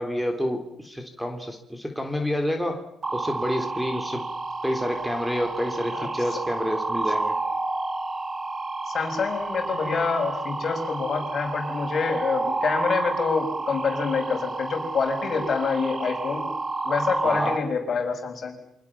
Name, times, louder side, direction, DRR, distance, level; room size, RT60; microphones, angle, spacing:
voice 1, 0.0-2.9 3.1-4.3 4.6-7.3 17.2-17.6, equal, ahead, 3 dB, 3.7 m, -28 dB
sound 1, 3.0-17.6, right 3 dB, 35° right, 3.2 m, -30 dB
voice 2, 8.9-16.5 16.8-18.6, left 5 dB, 50° left, 4 dB, 6.5 m, -26 dB
28.0 x 25.0 x 7.3 m, 0.76 s
cardioid pair, 90°, 0 cm